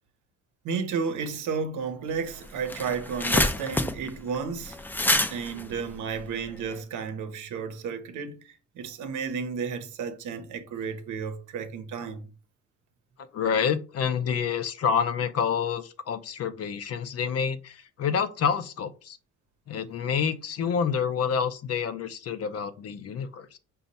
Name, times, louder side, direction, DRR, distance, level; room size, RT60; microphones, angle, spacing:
voice 1, 0.6-4.8 5.3-12.3, right 5 dB, 80° right, 0.8 m, -32 dB
sound 1, 2.2-2.3 2.5-6.8, left 1 dB, 5° left, 0.4 m, -27 dB
voice 2, 13.3-19.2 19.7-23.6, left 7 dB, 55° left, 0.6 m, -28 dB
5.2 x 2.3 x 4.0 m
cardioid pair, 90°, 30 cm